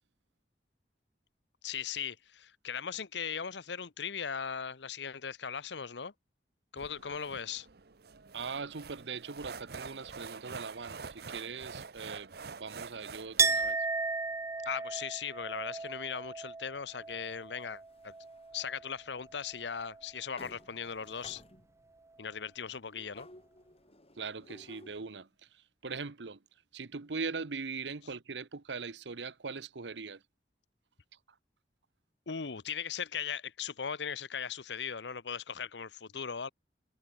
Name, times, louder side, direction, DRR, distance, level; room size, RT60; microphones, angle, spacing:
voice 1, 1.6-6.1 6.7-7.7 14.6-18.1 18.5-21.4 22.2-23.3 32.3-36.5, left 7 dB, 85° left, 0.9 m, -38 dB
sound 1, 6.8-13.7, right 5 dB, 60° right, 0.9 m, -47 dB
voice 2, 8.3-13.8 24.2-26.4 26.7-30.2, right 4 dB, 85° right, 1.0 m, -41 dB
Chink clink, 13.4-18.9 19.2-20.1, right 4 dB, 15° right, 0.3 m, -35 dB
sound 2, 17.1-18.6 19.3-19.4 19.8-19.9 20.4-21.9 22.9-25.2, left 2 dB, 35° left, 4.9 m, -56 dB
head